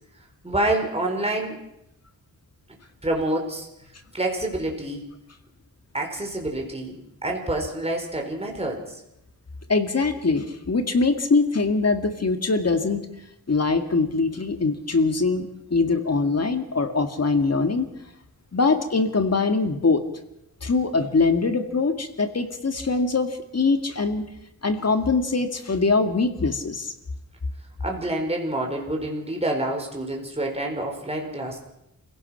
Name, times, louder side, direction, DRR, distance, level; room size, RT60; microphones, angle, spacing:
voice 1, 0.4-1.6 3.0-3.7 4.1-5.0 5.9-9.0 27.8-31.6, right 1 dB, 15° right, 1 dB, 4.4 m, -27 dB
voice 2, 9.7-13.1 13.5-17.9 18.5-20.0 20.6-24.2 24.6-26.9, left 3 dB, 45° left, 7 dB, 2.1 m, -23 dB
28.5 x 16.5 x 5.8 m, 0.84 s
wide cardioid pair, 90°, 37 cm